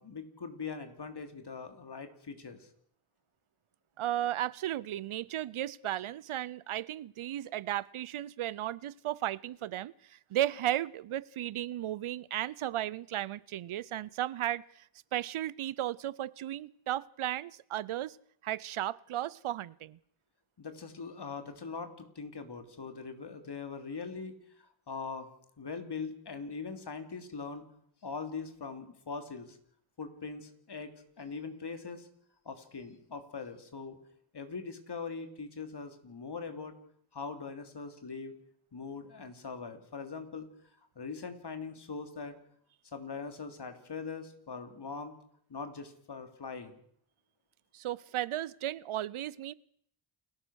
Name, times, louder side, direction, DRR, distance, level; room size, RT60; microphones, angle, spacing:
voice 1, 0.0-2.7 20.6-25.3 25.6-27.6 28.0-29.6 30.0-32.1 32.4-34.0 34.3-36.8 37.1-38.3 38.7-40.5 40.9-42.4 42.8-45.2 45.5-46.8, left 5 dB, 55° left, 7 dB, 3.2 m, -41 dB
voice 2, 4.0-14.9 15.1-18.2 18.4-20.0 47.7-49.5, right 12 dB, 75° right, 22 dB, 0.7 m, -35 dB
28.5 x 14.5 x 6.4 m, 0.66 s
cardioid pair, 65°, 49 cm